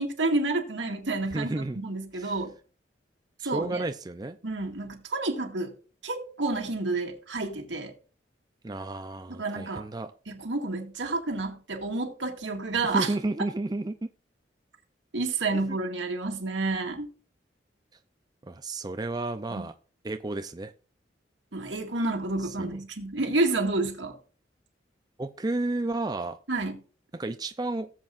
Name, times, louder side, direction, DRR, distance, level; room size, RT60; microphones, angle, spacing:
voice 1, 0.0-2.5 3.4-3.8 4.4-5.7 6.0-7.9 9.4-9.9 10.3-13.1 15.1-17.1 19.5-19.7 21.5-24.2 26.5-26.8, right 2 dB, 85° right, 2.1 m, -29 dB
voice 2, 1.3-1.8 2.2-2.4 3.4-4.4 8.6-10.1 12.8-13.9 15.5-15.8 18.4-19.7 20.0-20.7 22.4-22.7 25.2-26.4 27.1-27.9, right 2 dB, 20° right, 0.5 m, -32 dB
18.0 x 7.6 x 2.5 m
head